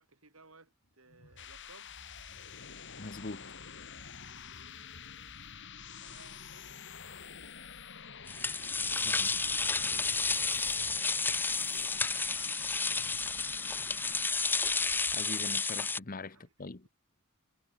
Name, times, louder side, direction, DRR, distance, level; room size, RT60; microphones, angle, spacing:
voice 1, 0.0-1.9 4.3-4.7 5.9-6.9 10.1-14.8 16.3-16.5 16.8-16.9, right 3 dB, 85° right, 7.2 m, -60 dB
sound 1, 1.1-15.6, left 6 dB, 60° left, 7.5 m, -48 dB
voice 2, 3.0-3.5 9.0-9.4 9.8-10.0 15.1-16.9, left 3 dB, 45° left, 1.1 m, -43 dB
sound 2, 8.3-16.0, left 4 dB, 10° left, 0.3 m, -31 dB
head